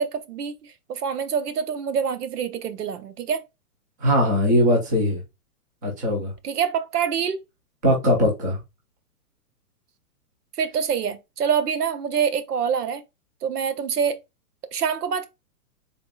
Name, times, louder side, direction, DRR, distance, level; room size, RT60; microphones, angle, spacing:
voice 1, 0.0-3.4 6.4-7.4 10.6-13.0 13.4-14.2 14.7-15.3, right 7 dB, 90° right, 0.8 m, -25 dB
voice 2, 4.0-5.2 5.8-6.3 7.8-8.6, left 1 dB, 15° right, 0.5 m, -20 dB
3.8 x 3.8 x 2.3 m
hypercardioid pair, 160°, 45 cm